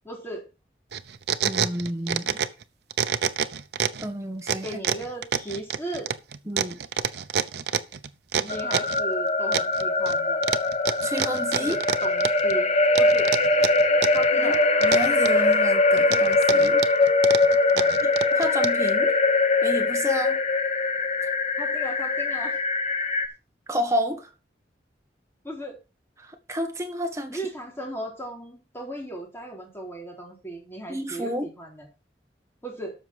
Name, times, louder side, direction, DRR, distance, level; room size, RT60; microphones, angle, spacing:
voice 1, 0.0-0.4 4.6-6.1 8.4-10.5 11.6-13.3 14.1-14.6 17.7-18.0 21.6-22.6 25.4-25.8 27.3-31.9 32.6-32.9, right 1 dB, 15° left, 4.2 m, -36 dB
sound 1, 0.9-2.6 2.9-4.1 4.5-9.0 9.5-10.2 10.4-12.5 13.0-14.3 14.5-15.5 16.0-18.9, right 7 dB, 70° right, 0.7 m, -27 dB
voice 2, 1.4-2.4 4.0-4.6 6.5-6.8 11.0-11.8 14.4-14.5 14.8-16.8 18.0-19.1 19.6-20.4 23.7-24.3 26.2-27.4 30.9-31.5, equal, 15° right, 1.7 m, -30 dB
sound 2, 8.5-23.3, left 3 dB, 35° left, 1.1 m, -22 dB
13.0 x 6.1 x 4.9 m
head